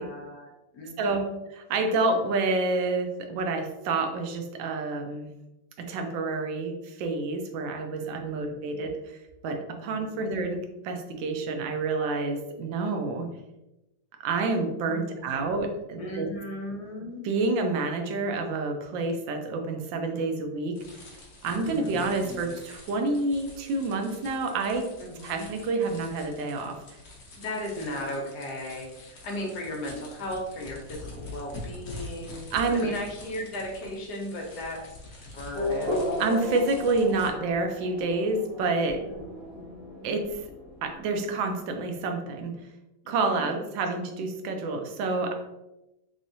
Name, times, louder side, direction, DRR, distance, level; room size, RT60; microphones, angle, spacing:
voice 1, 0.0-1.4 8.0-8.7 9.8-10.3 14.9-15.6 15.9-17.2 21.5-22.6 25.0-25.5 27.4-34.8 35.3-36.3 39.0-40.1 43.0-43.7, left 1 dB, 65° left, 0 dB, 1.2 m, -37 dB
voice 2, 1.5-5.3 5.8-9.2 9.4-13.3 14.2-16.3 17.2-20.8 21.4-24.9 25.2-26.8 32.5-32.9 36.2-39.0 40.0-40.4 40.8-42.5 43.1-45.3, right 3 dB, 80° right, 4 dB, 1.3 m, -28 dB
sound 1, 20.7-37.3, left 2 dB, 50° left, 0.8 m, -45 dB
Race car auto racing / Accelerating revving vroom, 35.5-41.6, left 1 dB, 45° right, 1.5 m, -34 dB
3.6 x 3.4 x 2.6 m, 0.95 s
omnidirectional pair, 2.0 m